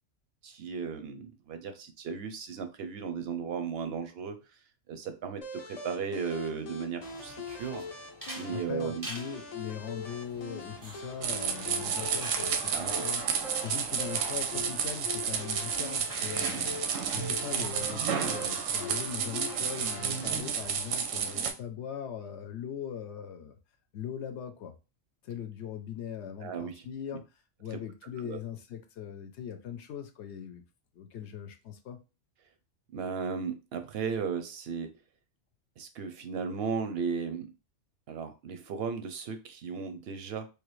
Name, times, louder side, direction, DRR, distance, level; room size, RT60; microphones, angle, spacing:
voice 1, 0.4-4.4 4.9-7.8 8.3-9.1 12.7-13.1 26.4-26.8 27.7-27.8 28.2-28.4 32.9-34.9 35.8-37.5 38.1-40.5, right 6 dB, 65° right, 0.7 m, -35 dB
sound 1, 5.4-20.4, left 2 dB, 50° left, 0.5 m, -43 dB
sound 2, 7.0-19.7, right 1 dB, 25° right, 0.5 m, -48 dB
voice 2, 8.5-13.3 13.6-16.7 17.1-23.5 23.9-24.7 25.2-27.2 27.6-30.6 30.9-32.0, left 8 dB, 70° left, 0.8 m, -40 dB
sound 3, 11.2-21.5, right 7 dB, 85° right, 1.0 m, -31 dB
3.2 x 2.4 x 3.0 m
omnidirectional pair, 1.3 m